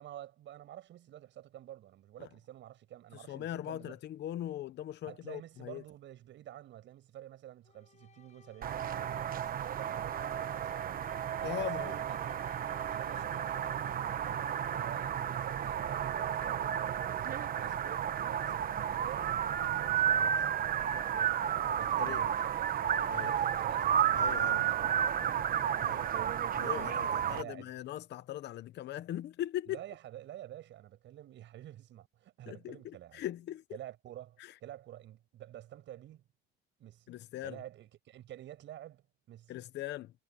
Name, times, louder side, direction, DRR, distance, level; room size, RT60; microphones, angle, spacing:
voice 1, 0.0-4.0 5.0-12.3 12.9-26.4 26.9-27.7 29.7-33.2 33.7-36.2 36.8-37.1 37.4-39.5, right 12 dB, 60° right, 7.3 m, -49 dB
voice 2, 3.3-5.8 11.4-12.0 22.0-22.2 23.1-23.3 24.1-24.6 25.8-26.0 26.6-29.8 32.5-33.6 34.4-34.5 37.1-37.6 39.5-40.1, left 13 dB, 55° left, 0.8 m, -40 dB
sound 1, 7.6-16.0, left 6 dB, 35° left, 5.3 m, -59 dB
sound 2, 8.6-27.4, right 9 dB, 45° right, 1.1 m, -32 dB
cardioid pair, 135°, 21 cm